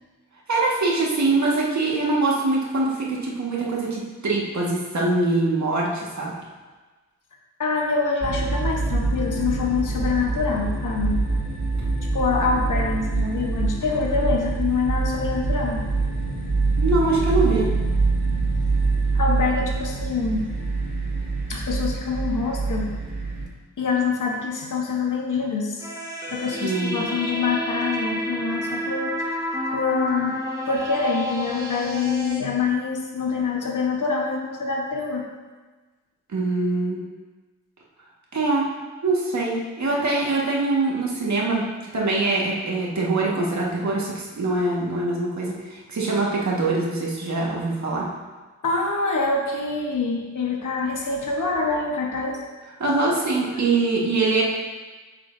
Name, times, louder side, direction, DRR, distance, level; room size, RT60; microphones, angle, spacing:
voice 1, 0.5-6.3 16.8-17.7 26.6-27.0 36.3-37.0 38.3-38.7 39.0-41.6 41.9-48.1 52.8-54.4, right 3 dB, 60° right, -3 dB, 1.8 m, -23 dB
voice 2, 7.6-11.2 12.1-15.8 19.1-20.5 21.5-22.9 23.8-25.9 26.3-30.4 30.7-35.2 48.6-52.4, left 4 dB, 70° left, 0 dB, 1.3 m, -25 dB
sound 1, 8.2-23.5, right 3 dB, 25° right, 2.1 m, -25 dB
sound 2, 25.8-32.4, equal, 10° right, 1.6 m, -29 dB
8.5 x 6.5 x 2.7 m, 1.3 s
cardioid pair, 65°, 32 cm